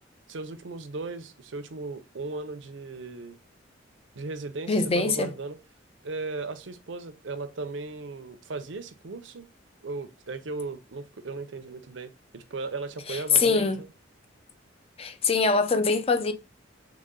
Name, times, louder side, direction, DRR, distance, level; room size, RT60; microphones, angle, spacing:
voice 1, 0.3-3.4 4.1-5.6 6.0-9.5 9.8-13.9, right 3 dB, 75° right, 0.7 m, -37 dB
voice 2, 4.7-5.3 13.1-13.8 15.0-16.3, left 4 dB, 30° left, 0.5 m, -23 dB
3.9 x 3.6 x 3.7 m
head